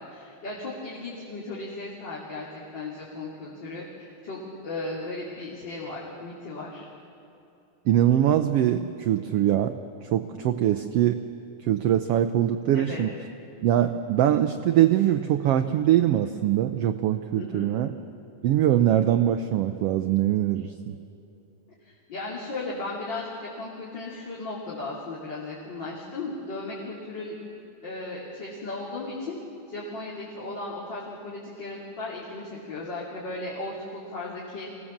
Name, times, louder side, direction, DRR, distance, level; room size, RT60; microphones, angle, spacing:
voice 1, 0.0-3.8 4.2-6.9 12.7-13.0 17.3-17.7 21.8-27.3 27.8-29.4 29.7-34.7, left 2 dB, 35° left, -6 dB, 3.4 m, -36 dB
voice 2, 7.9-9.8 10.0-11.2 11.6-13.1 13.6-17.9 18.4-21.0, right 11 dB, 80° right, 8 dB, 1.4 m, -22 dB
25.0 x 17.5 x 7.3 m, 2.8 s
omnidirectional pair, 3.5 m